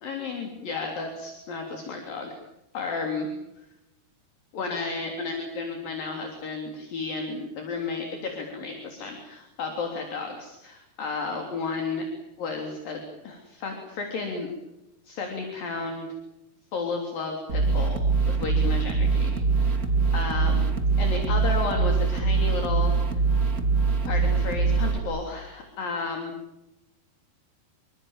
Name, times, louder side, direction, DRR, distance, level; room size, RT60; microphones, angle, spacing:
voice 1, 0.0-2.4 2.7-3.3 4.5-12.1 12.4-14.5 15.1-16.1 16.7-18.0 18.3-19.8 20.1-20.6 21.0-23.2 24.1-26.3, left 4 dB, 55° left, 2 dB, 5.0 m, -32 dB
sound 1, 17.5-25.0, right 4 dB, 25° right, 2.1 m, -23 dB
28.0 x 25.5 x 7.5 m, 0.92 s
omnidirectional pair, 4.8 m